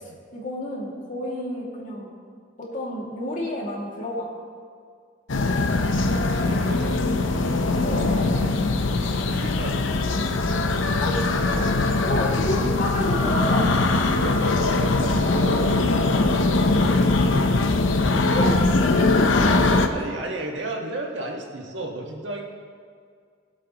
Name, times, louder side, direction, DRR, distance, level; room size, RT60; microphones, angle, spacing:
voice 1, 0.3-2.1 2.6-4.3 7.8-8.6 11.0-11.2 12.1-13.8 18.3-19.8, left 1 dB, 45° left, -3 dB, 2.3 m, -30 dB
sound 1, 5.3-19.9, left 2 dB, 85° left, 0.8 m, -21 dB
voice 2, 5.9-7.1 9.0-10.1 13.6-13.7 14.1-17.3 19.9-22.4, right 2 dB, 70° right, 0 dB, 1.6 m, -34 dB
21.0 x 8.2 x 3.0 m, 2.1 s
head